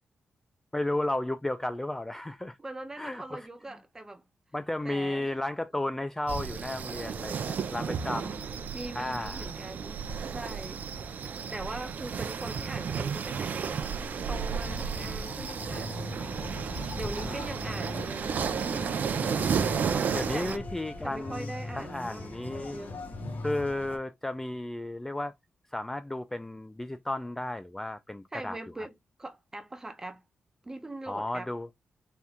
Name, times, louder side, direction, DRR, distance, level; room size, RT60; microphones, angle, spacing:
voice 1, 0.7-2.6 3.0-3.5 4.5-8.5 9.0-9.5 17.2-17.7 19.2-19.5 20.1-21.5 21.8-22.8 23.4-25.3 25.7-28.9 31.1-31.7, left 1 dB, 10° left, 0.3 m, -34 dB
voice 2, 2.6-4.2 4.8-5.3 7.7-8.4 8.7-10.9 11.5-13.9 14.3-16.3 16.9-19.6 19.9-20.6 21.0-23.0 28.3-28.9 29.2-30.2 30.6-31.5, right 2 dB, 15° right, 0.7 m, -42 dB
sound 1, 6.3-20.6, right 6 dB, 55° right, 0.6 m, -33 dB
sound 2, 14.6-24.0, left 2 dB, 60° left, 1.4 m, -40 dB
4.3 x 2.4 x 3.5 m
wide cardioid pair, 130°, 3 cm